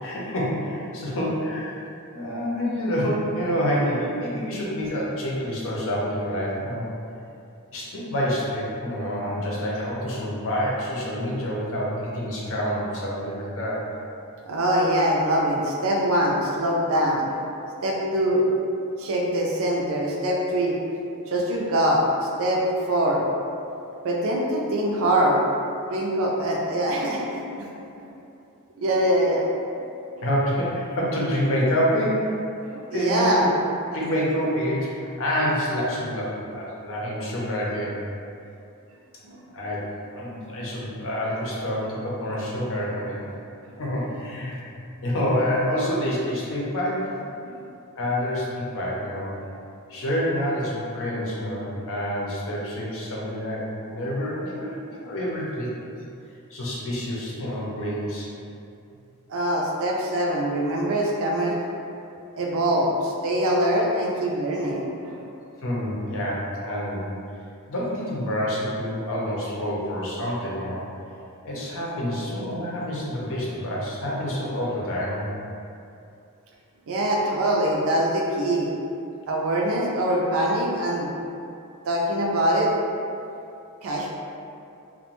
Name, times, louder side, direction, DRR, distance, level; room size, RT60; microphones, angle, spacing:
voice 1, 0.0-1.8 2.1-6.9 7.7-13.8 30.2-32.4 32.7-33.5 33.9-38.0 39.5-39.8 40.1-43.3 43.8-44.6 45.0-47.1 48.0-49.3 49.9-55.7 56.5-58.3 65.6-67.1 67.7-70.8 71.4-75.3, equal, 65° left, -5 dB, 0.6 m, -27 dB
voice 2, 14.4-17.2 17.8-18.4 19.0-20.8 21.3-22.6 22.9-23.2 24.0-25.4 25.9-27.7 27.9-28.1 28.8-29.5 32.9-33.5 39.2-39.4 47.4-47.6 59.3-61.6 62.3-65.2 73.2-73.4 76.9-78.7 79.3-81.1 81.9-82.7 83.8-84.1, right 1 dB, 65° right, -2 dB, 0.4 m, -23 dB
2.5 x 2.1 x 2.9 m, 2.6 s
head